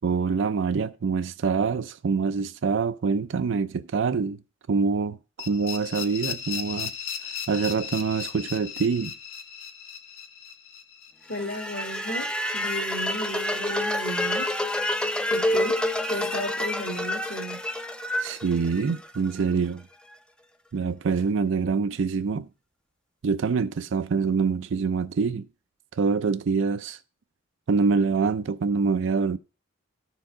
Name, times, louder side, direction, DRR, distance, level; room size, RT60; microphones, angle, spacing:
voice 1, 0.0-4.4 4.7-5.2 5.5-6.9 7.5-9.1 18.2-19.8 20.7-22.5 23.2-25.5 25.9-27.0 27.7-29.4, right 5 dB, 65° right, 0.4 m, -25 dB
sound 1, 5.4-12.2, left 8 dB, 70° left, 1.1 m, -36 dB
voice 2, 11.3-14.5 15.3-15.8 16.1-17.6, left 1 dB, 55° left, 1.6 m, -34 dB
sound 2, 11.3-19.4, left 1 dB, 5° left, 0.5 m, -28 dB
13.0 x 4.6 x 3.7 m
head